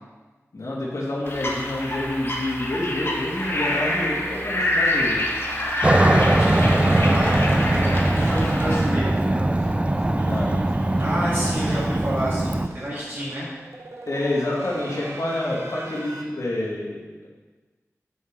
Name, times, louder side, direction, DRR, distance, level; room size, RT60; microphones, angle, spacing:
voice 1, 0.5-5.2 10.3-10.6 14.1-17.3, left 1 dB, 75° left, -6 dB, 2.3 m, -28 dB
sound 1, 1.3-8.8, left 1 dB, 45° left, 1.5 m, -26 dB
sound 2, 3.4-8.5 8.8-8.9 9.2-9.3 9.5-16.2, right 2 dB, 60° right, 1.1 m, -43 dB
Aircraft, 5.8-12.7, right 1 dB, 20° right, 0.4 m, -21 dB
voice 2, 5.9-9.7 10.1-10.2 11.0-13.5, equal, 45° right, -10 dB, 2.7 m, -30 dB
8.1 x 6.4 x 5.3 m, 1.3 s
wide cardioid pair, 75°, 5 cm